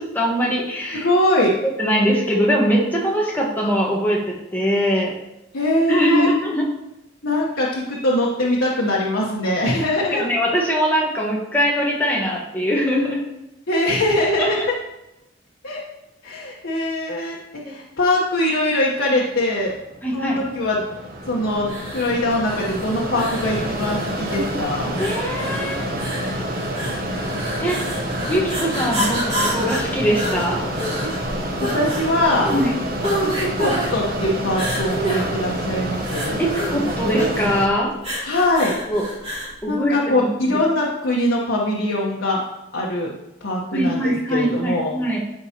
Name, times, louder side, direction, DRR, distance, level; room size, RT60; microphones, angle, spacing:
voice 1, 0.0-1.1 1.6-5.1 5.9-6.7 10.1-13.2 14.4-14.7 20.0-20.4 25.0-25.9 26.2-26.4 27.0-27.2 27.6-27.8 28.3-30.7 32.5-32.8 36.4-37.9 38.9-39.1 39.6-40.6 43.7-45.2, equal, 10° left, -3 dB, 1.3 m, -22 dB
voice 2, 0.9-1.5 5.5-6.3 7.2-10.2 13.7-14.6 15.6-15.8 16.2-17.4 17.7-19.7 20.1-20.8 21.3-24.9 31.0-31.1 31.6-32.5 33.4-36.4 38.2-38.8 39.7-42.4 42.7-43.1 43.4-44.9, left 1 dB, 85° left, -5 dB, 1.1 m, -22 dB
Mechanisms, 19.7-37.7, right 1 dB, 50° right, 1.1 m, -28 dB
sound 1, 21.6-39.6, equal, 30° right, 2.8 m, -29 dB
12.5 x 4.8 x 2.9 m, 0.90 s
head